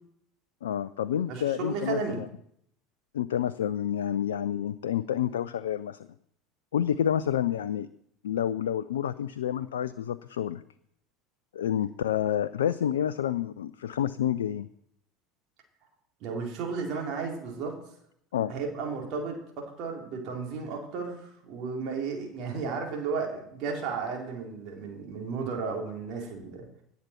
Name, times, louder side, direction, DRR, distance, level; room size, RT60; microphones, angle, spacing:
voice 1, 0.6-2.3 3.1-6.0 6.7-7.9 8.2-10.6 11.5-14.7 18.3-18.5, left 10 dB, 70° left, 14 dB, 0.4 m, -29 dB
voice 2, 1.3-2.2 16.2-17.8 18.5-26.7, right 5 dB, 50° right, 0 dB, 3.7 m, -34 dB
17.5 x 8.3 x 4.5 m, 0.72 s
figure-of-eight pair, 70°, 0 cm